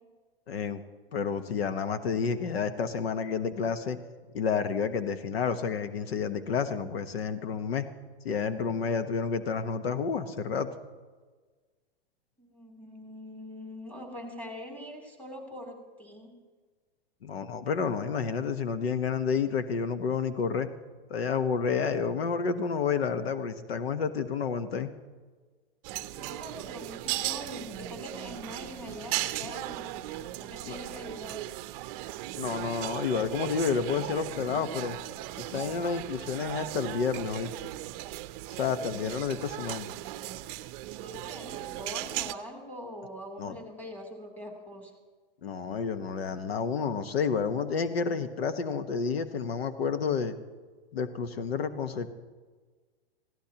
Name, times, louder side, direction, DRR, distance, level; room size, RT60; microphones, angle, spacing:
voice 1, 0.5-0.8 1.1-4.0 4.3-7.9 8.2-10.7 17.2-20.7 21.1-24.9 30.7-30.8 32.4-35.0 35.4-37.5 38.6-39.9 43.4-43.6 45.4-50.3 50.9-52.1, left 6 dB, 80° left, 10 dB, 1.1 m, -30 dB
voice 2, 12.4-16.3 26.1-29.9 30.4-31.4 41.0-44.9, equal, 5° left, 1 dB, 3.1 m, -43 dB
sound 1, 25.8-42.3, right 16 dB, 40° right, 0.6 m, -37 dB
22.0 x 16.5 x 2.9 m, 1.4 s
hypercardioid pair, 135°, 30 cm